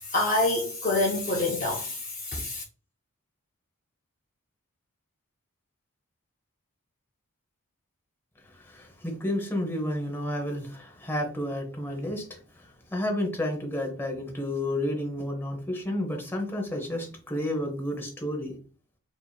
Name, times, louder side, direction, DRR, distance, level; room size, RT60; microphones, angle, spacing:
voice 1, 0.0-2.6, left 2 dB, 35° left, 0.6 m, -27 dB
voice 2, 8.5-12.4 12.9-18.5, left 1 dB, 10° left, 0.9 m, -31 dB
4.6 x 2.8 x 2.3 m
head